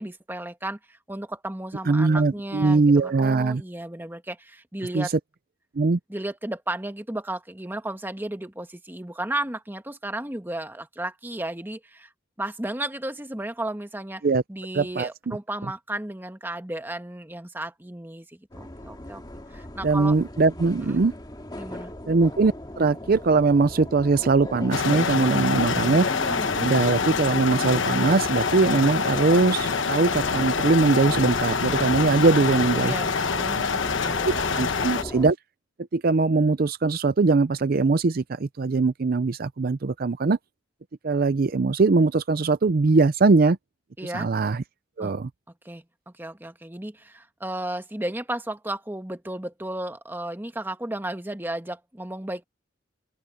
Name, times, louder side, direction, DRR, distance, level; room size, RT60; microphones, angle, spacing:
voice 1, 0.0-5.1 6.1-12.1 12.4-14.2 14.5-19.2 19.5-20.2 20.8-21.0 21.5-21.9 32.8-34.7 44.0-44.3 45.0-45.1 45.6-52.4, right 1 dB, 10° right, 1.4 m, -34 dB
voice 2, 1.9-3.6 4.9-5.1 5.8-6.0 14.2-14.4 14.7-15.1 19.8-21.1 22.1-26.1 26.6-32.9 34.2-35.4 35.9-40.4 41.0-43.6 44.1-44.6 45.0-45.3, right 3 dB, 50° right, 0.5 m, -21 dB
sound 1, 18.5-35.3, left 1 dB, 20° left, 2.1 m, -37 dB
sound 2, 24.7-35.0, left 5 dB, 85° left, 1.1 m, -26 dB
open air
head